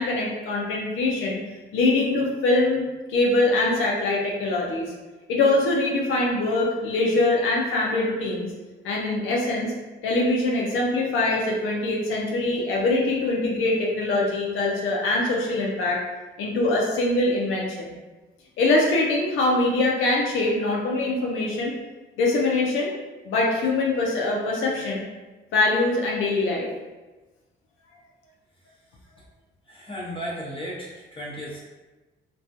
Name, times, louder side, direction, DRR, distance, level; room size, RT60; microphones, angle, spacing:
voice 1, 0.0-1.4 1.7-2.8 3.1-4.9 5.3-8.5 8.8-9.7 10.0-16.0 16.4-17.9 18.6-21.7 22.2-22.9 23.2-25.0 25.5-26.7, left 2 dB, 85° left, -2 dB, 0.6 m, -23 dB
voice 2, 29.7-31.6, equal, 25° left, -6 dB, 0.9 m, -35 dB
2.3 x 2.2 x 2.6 m, 1.2 s
cardioid pair, 90°, 20 cm